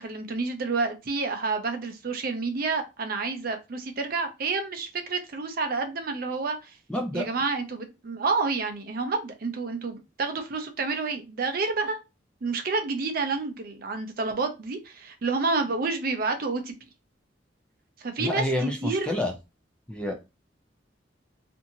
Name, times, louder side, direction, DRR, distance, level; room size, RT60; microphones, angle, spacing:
voice 1, 0.0-6.7 7.1-12.0 12.4-16.7 18.0-19.1, right 4 dB, 50° right, 0.5 m, -29 dB
voice 2, 6.9-7.3 18.2-19.3 19.9-20.1, left 1 dB, 5° left, 0.4 m, -28 dB
2.8 x 2.6 x 2.7 m
head